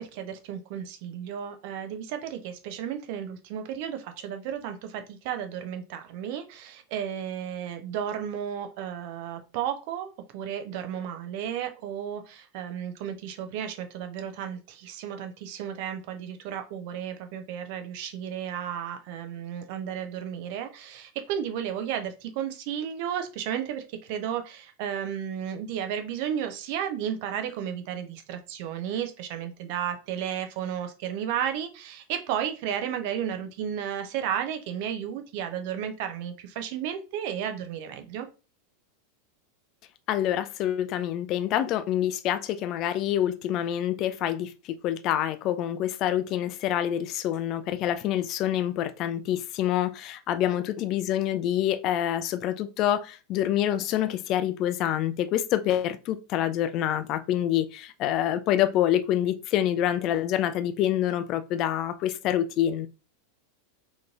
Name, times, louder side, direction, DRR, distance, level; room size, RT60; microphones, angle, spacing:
voice 1, 0.0-23.8 24.1-38.3, right 9 dB, 50° right, 0.6 m, -33 dB
voice 2, 40.1-44.5 44.8-62.9, left 11 dB, 40° left, 0.3 m, -26 dB
3.7 x 3.0 x 2.4 m
figure-of-eight pair, 85°, 0 cm